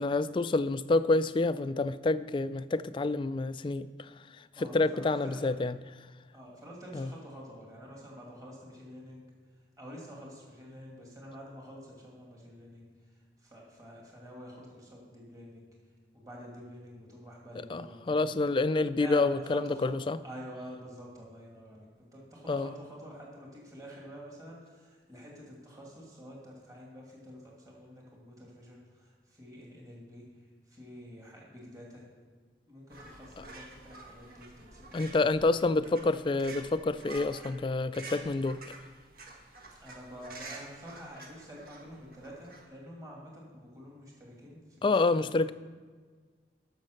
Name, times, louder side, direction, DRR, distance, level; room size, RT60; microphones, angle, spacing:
voice 1, 0.0-4.1 4.6-5.8 6.9-7.1 17.7-20.2 22.5-22.7 33.4-33.5 34.9-38.7 44.8-45.5, left 3 dB, 30° left, 0.3 m, -28 dB
voice 2, 4.5-5.6 6.3-9.3 9.8-12.9 13.4-15.7 16.1-18.3 18.9-19.9 20.2-30.2 30.7-32.0 32.7-35.4 39.8-45.5, equal, 20° right, 2.4 m, -48 dB
sound 1, 32.9-42.6, right 3 dB, 55° right, 1.6 m, -49 dB
10.5 x 6.5 x 6.5 m
head